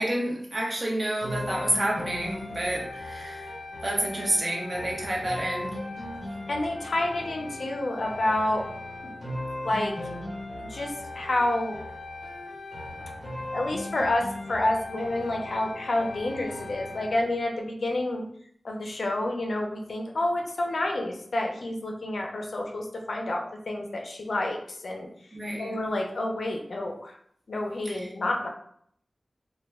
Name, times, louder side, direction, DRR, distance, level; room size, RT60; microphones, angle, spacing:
voice 1, 0.0-3.5 3.8-5.8 25.3-25.8 27.8-28.1, right 1 dB, 45° right, -3 dB, 0.7 m, -29 dB
sound 1, 1.2-17.2, left 1 dB, 35° left, 1.0 m, -37 dB
voice 2, 6.5-8.6 9.6-9.9 10.6-11.8 13.5-18.2 18.6-25.1 25.6-27.1 27.5-28.5, left 1 dB, 75° left, 1 dB, 0.4 m, -29 dB
2.1 x 2.0 x 3.4 m, 0.67 s
wide cardioid pair, 100°, 0 cm